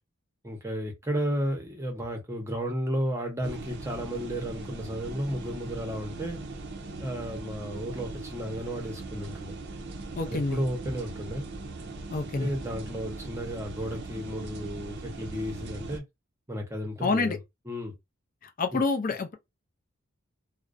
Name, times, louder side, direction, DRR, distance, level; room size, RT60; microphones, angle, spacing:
voice 1, 0.4-6.4 7.0-9.5 10.3-11.5 12.4-16.0 16.5-17.4 17.7-17.9 18.7-18.8, equal, 15° right, 0.7 m, -33 dB
sound 1, 3.4-16.0, right 3 dB, 50° right, 0.5 m, -40 dB
voice 2, 10.2-10.6 12.1-12.5 17.0-17.4 18.6-19.3, left 3 dB, 40° left, 0.4 m, -27 dB
2.4 x 2.1 x 2.4 m
head